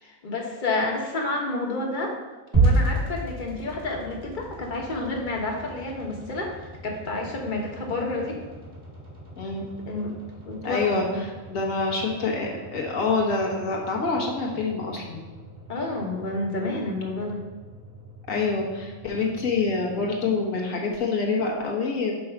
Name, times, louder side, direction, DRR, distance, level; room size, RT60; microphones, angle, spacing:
voice 1, 0.0-2.1 2.5-6.5 6.8-8.4 9.9-10.1 10.5-10.8 15.7-17.4, left 2 dB, 40° left, 0 dB, 1.2 m, -29 dB
sound 1, 2.5-20.8, right 2 dB, 55° right, 2.8 m, -33 dB
voice 2, 10.6-11.0 11.5-15.2 18.3-22.1, left 4 dB, 80° left, -1 dB, 1.5 m, -26 dB
5.4 x 4.5 x 5.8 m, 1.3 s
omnidirectional pair, 1.4 m